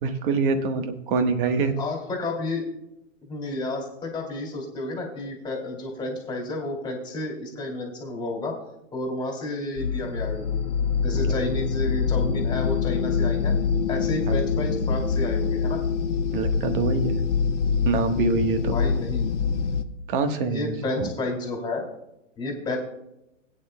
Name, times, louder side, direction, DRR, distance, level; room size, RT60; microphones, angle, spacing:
voice 1, 0.0-1.7 11.1-11.3 14.3-14.4 16.3-17.2 17.8-18.8 20.1-21.1, right 4 dB, 40° right, 8 dB, 1.3 m, -25 dB
voice 2, 1.8-2.7 3.2-8.5 8.9-10.6 11.0-13.5 13.9-15.8 18.7-19.3 20.5-21.9 22.4-22.8, left 2 dB, 10° left, -1 dB, 2.5 m, -31 dB
sound 1, 9.8-19.8, left 6 dB, 70° left, 1.0 m, -25 dB
21.5 x 9.1 x 2.2 m, 0.89 s
hypercardioid pair, 135°, 38 cm